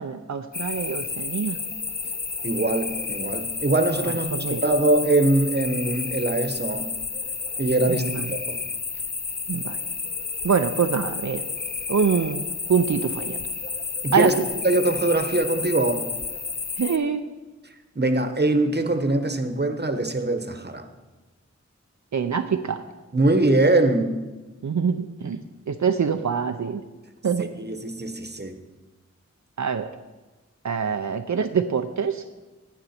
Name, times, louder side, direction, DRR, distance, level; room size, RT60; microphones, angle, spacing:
voice 1, 0.0-1.6 4.0-4.6 7.9-8.2 9.5-9.8 10.4-11.4 11.9-13.4 14.1-14.3 16.8-17.2 22.1-22.8 24.6-25.4 25.7-26.8 27.2-27.5 29.6-29.9 30.6-32.2, right 6 dB, 75° right, 6 dB, 0.5 m, -25 dB
sound 1, 0.5-17.0, left 4 dB, 35° left, 0.4 m, -31 dB
voice 2, 2.4-4.3 4.6-6.9 7.6-8.6 14.0-14.4 14.6-16.0 18.0-20.9 23.1-24.2 27.4-28.6, right 2 dB, 35° right, 7 dB, 0.9 m, -22 dB
10.5 x 9.4 x 4.3 m, 1.2 s
wide cardioid pair, 40°, 29 cm